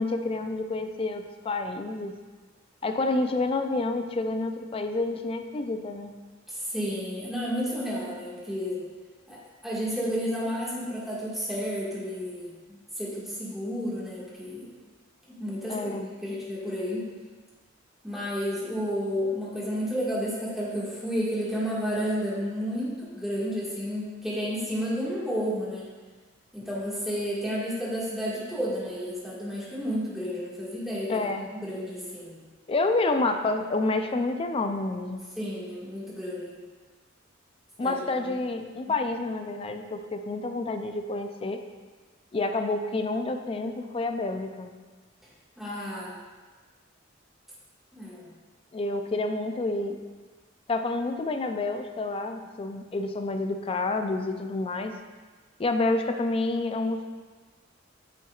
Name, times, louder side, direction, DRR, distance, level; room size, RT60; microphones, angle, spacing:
voice 1, 0.0-2.2 2.8-6.1 15.7-16.1 31.1-31.5 32.7-35.2 37.8-41.6 42.3-44.7 48.7-50.0 50.7-54.9 55.6-57.2, left 2 dB, 30° left, 7 dB, 0.4 m, -29 dB
voice 2, 6.5-8.8 9.3-14.7 15.3-15.9 16.2-17.1 18.0-25.9 26.5-31.3 31.6-32.4 35.4-36.6 37.8-38.3 38.9-39.0 45.6-46.2 47.9-48.3, equal, ahead, -8 dB, 1.8 m, -31 dB
8.5 x 5.7 x 2.4 m, 1.4 s
head